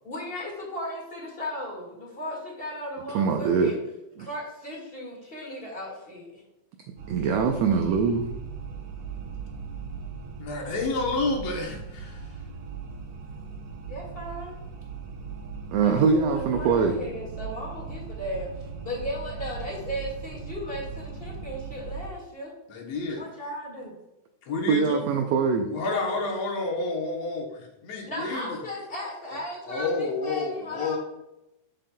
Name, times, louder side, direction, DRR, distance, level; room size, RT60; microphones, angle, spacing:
voice 1, 0.0-3.7 4.2-6.4 13.9-14.6 15.8-18.5 18.8-22.5 23.1-23.9 25.9-26.2 28.1-31.0, left 1 dB, 25° left, -2 dB, 1.5 m, -36 dB
voice 2, 3.1-3.7 4.2-4.3 7.1-8.3 15.7-17.0 24.7-25.7, right 5 dB, 85° right, 4 dB, 1.4 m, -23 dB
sound 1, 7.0-22.1, right 5 dB, 70° right, 1.7 m, -39 dB
voice 3, 10.4-12.4 22.7-23.2 24.5-25.1 25.7-28.6 29.3-29.4 29.6-31.0, left 3 dB, 65° left, 0 dB, 2.2 m, -30 dB
7.4 x 6.8 x 2.2 m, 0.91 s
omnidirectional pair, 3.4 m